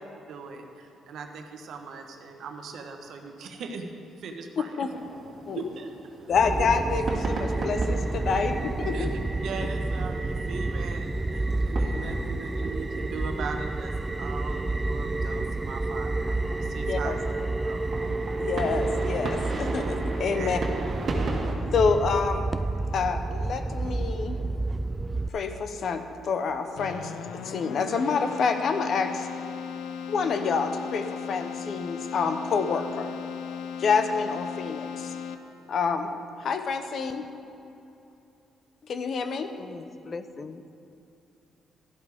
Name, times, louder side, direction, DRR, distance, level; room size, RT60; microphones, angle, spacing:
voice 1, 0.3-4.9 5.5-5.9 8.9-9.1 9.4-13.9 14.2-17.3 17.6-17.8 20.3-20.6, right 4 dB, 70° right, 4 dB, 1.1 m, -39 dB
sound 1, 4.9-21.5, right 2 dB, 50° right, 1.7 m, -38 dB
voice 2, 6.3-9.1 16.9-17.2 18.4-20.6 21.7-22.5 22.9-24.4 25.3-27.1 27.4-29.3 30.1-33.1 33.8-35.1 35.7-36.1 36.4-37.3 38.9-39.5, left 5 dB, 60° left, 7 dB, 0.9 m, -27 dB
sound 2, 6.3-25.3, right 2 dB, 20° right, 0.3 m, -29 dB
Keyboard (musical), 26.8-35.7, left 7 dB, 85° left, 0.6 m, -37 dB
voice 3, 39.6-40.6, left 4 dB, 35° left, 10 dB, 0.5 m, -40 dB
12.5 x 11.5 x 3.6 m, 2.8 s
cardioid pair, 90°, 0 cm